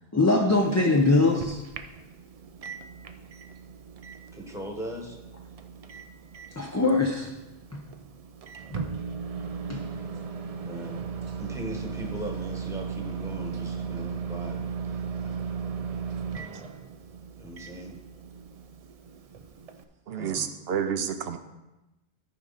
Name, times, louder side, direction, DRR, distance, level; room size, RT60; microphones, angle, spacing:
voice 1, 0.1-1.6 6.6-7.3 7.7-7.8 8.7-8.9 9.7-9.8, left 2 dB, 20° left, 0 dB, 0.6 m, -22 dB
Microwave oven, 0.5-19.8, right 6 dB, 45° right, 0.5 m, -37 dB
voice 2, 4.3-5.2 10.6-11.0 11.4-15.3 17.4-18.0 20.1-20.6, equal, 5° right, 1 dB, 1.2 m, -39 dB
voice 3, 20.1-21.4, right 8 dB, 70° right, 9 dB, 0.8 m, -29 dB
13.5 x 5.0 x 4.1 m, 1.0 s
omnidirectional pair, 1.1 m